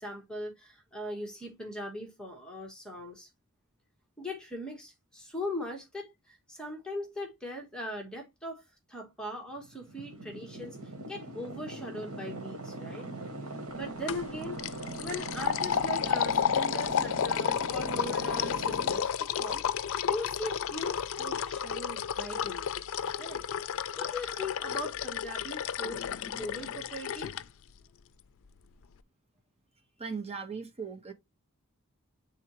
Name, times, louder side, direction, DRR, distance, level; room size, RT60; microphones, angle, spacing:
voice 1, 0.0-3.3 4.2-10.8 11.1-13.1 13.7-19.6 20.1-22.7 23.2-23.4 24.0-27.3, left 1 dB, 5° left, 1.3 m, -40 dB
sound 1, 9.6-19.0, right 1 dB, 80° right, 1.6 m, -40 dB
sound 2, 14.1-14.3 14.6-27.4, left 8 dB, 65° left, 0.4 m, -32 dB
voice 2, 30.0-31.1, right 5 dB, 30° right, 1.2 m, -38 dB
8.8 x 3.7 x 3.0 m
head